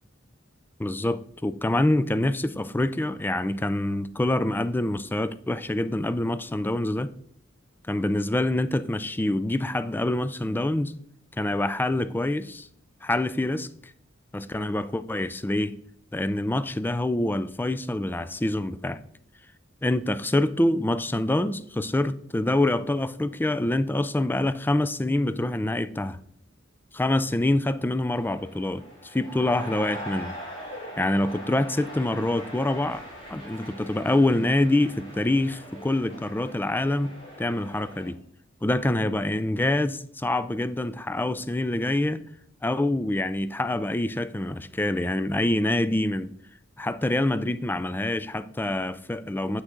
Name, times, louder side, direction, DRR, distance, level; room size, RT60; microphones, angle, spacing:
voice 1, 0.8-7.1 7.9-10.9 11.4-12.7 13.0-13.9 14.3-15.8 16.1-19.0 19.8-26.2 26.9-30.3 31.0-33.0 33.3-37.1 37.4-38.2 38.6-42.2 42.6-46.3 46.8-49.6, left 1 dB, 10° left, 0.3 m, -26 dB
sound 1, 28.1-38.1, equal, 70° left, 3.1 m, -41 dB
7.8 x 6.2 x 3.8 m
head